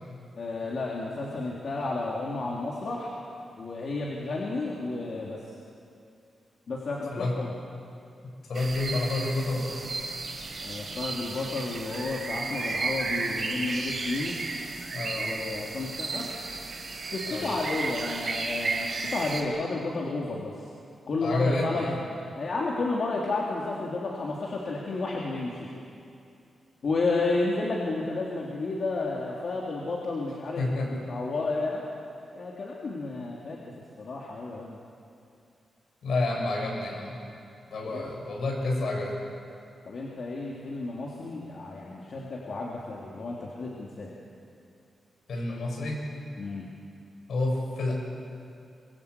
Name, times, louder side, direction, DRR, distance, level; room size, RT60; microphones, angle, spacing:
voice 1, 0.4-3.1 3.6-5.4 6.7-7.5 10.6-14.4 15.2-16.3 16.9-20.7 21.1-22.0 22.3-25.7 26.8-31.9 32.3-34.8 37.8-38.1 39.8-44.1 46.4-46.7, left 3 dB, 55° left, -3 dB, 3.0 m, -32 dB
voice 2, 8.2-9.8 14.9-15.3 17.3-17.6 21.2-22.0 30.6-30.9 36.0-37.2 37.7-39.2 45.3-46.1 47.3-47.9, left 2 dB, 70° left, 0 dB, 7.1 m, -29 dB
sound 1, 8.5-19.4, right 3 dB, 40° right, 3.3 m, -33 dB
24.0 x 23.5 x 8.3 m, 2.5 s
wide cardioid pair, 145°, 0 cm